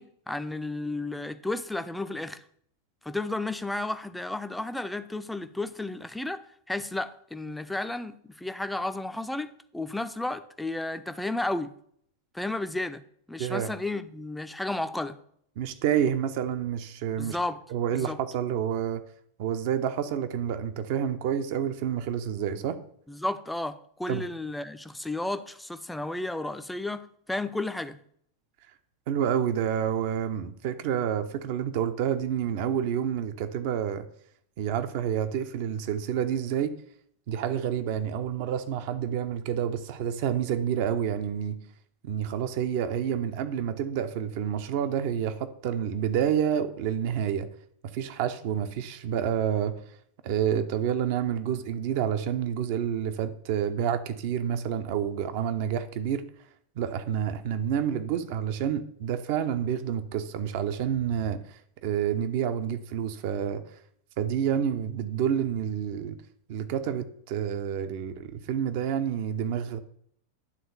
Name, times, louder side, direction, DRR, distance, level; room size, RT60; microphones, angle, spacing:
voice 1, 0.0-2.4 3.0-6.4 6.7-11.7 12.3-13.0 13.3-15.2 17.2-17.6 17.9-18.2 23.1-28.0, left 2 dB, 5° left, 0.5 m, -33 dB
voice 2, 13.4-13.7 15.6-17.4 17.7-19.0 19.4-22.8 24.1-24.2 29.1-34.0 34.6-36.7 37.3-41.6 42.0-47.5 47.9-49.8 50.2-56.2 56.8-63.6 64.2-66.2 66.5-69.8, right 9 dB, 50° right, 0.8 m, -28 dB
10.0 x 3.8 x 6.8 m
figure-of-eight pair, 90°, 0 cm